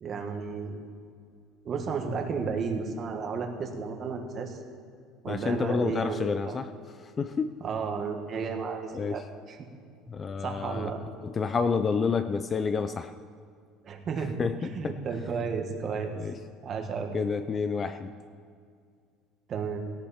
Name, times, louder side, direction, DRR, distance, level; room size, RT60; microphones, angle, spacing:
voice 1, 0.0-0.8 1.6-4.6 5.2-6.6 7.6-9.6 10.4-11.0 13.8-16.1 16.6-17.1 19.5-19.8, right 5 dB, 30° right, 3 dB, 1.7 m, -33 dB
voice 2, 5.3-6.7 7.2-7.5 8.9-9.2 10.1-10.9 11.4-13.1 14.4-14.5 14.8-14.9 16.2-16.3 17.1-18.1, left 5 dB, 20° left, 10 dB, 0.4 m, -28 dB
17.5 x 17.5 x 4.3 m, 2.2 s
cardioid pair, 170°, 0 cm